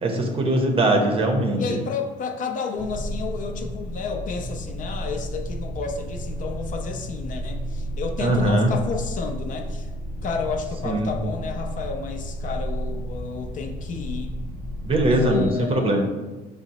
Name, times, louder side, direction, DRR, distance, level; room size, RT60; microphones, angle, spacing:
voice 1, 0.0-1.8 8.2-8.7 10.8-11.1 14.8-16.0, right 1 dB, 35° right, 3 dB, 0.6 m, -21 dB
voice 2, 1.5-9.9 10.2-14.3 15.1-16.0, left 5 dB, 50° left, 4 dB, 0.5 m, -31 dB
sound 1, 2.8-15.5, equal, 10° left, 0.9 m, -32 dB
4.8 x 2.0 x 4.0 m, 1.2 s
cardioid pair, 110°, 17 cm